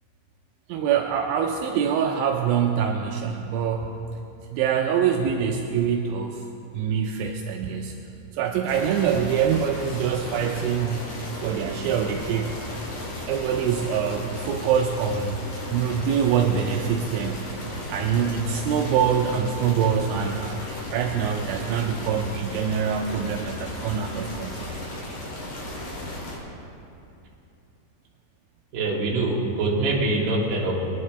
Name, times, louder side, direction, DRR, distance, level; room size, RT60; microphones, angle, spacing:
voice 1, 0.7-3.9 4.5-6.4 6.7-8.0 8.3-11.1 11.4-12.6 13.3-15.4 15.7-17.4 17.9-24.7, right 7 dB, 85° right, 3 dB, 3.0 m, -25 dB
sound 1, 8.7-26.4, left 1 dB, 50° left, 3.6 m, -35 dB
voice 2, 28.7-30.8, right 2 dB, 55° right, -4 dB, 3.2 m, -24 dB
22.0 x 11.0 x 3.3 m, 2.8 s
omnidirectional pair, 5.5 m